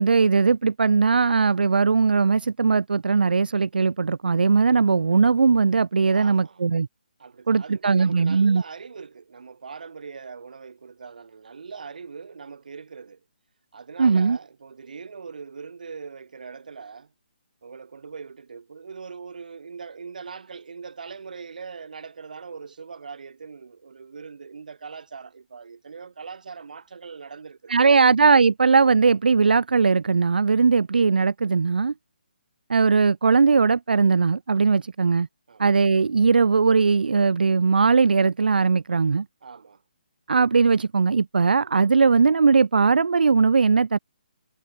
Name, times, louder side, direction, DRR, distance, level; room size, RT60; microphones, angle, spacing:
voice 1, 0.0-6.9 7.5-8.6 14.0-14.4 27.7-31.9 32.7-35.3 35.6-39.2 40.3-44.0, right 5 dB, 75° right, 1.1 m, -19 dB
voice 2, 6.1-6.6 7.2-13.2 13.7-17.1 17.6-28.1 35.5-35.6 39.4-39.8, right 5 dB, 55° right, 5.6 m, -41 dB
hypercardioid pair, 175°, 5 cm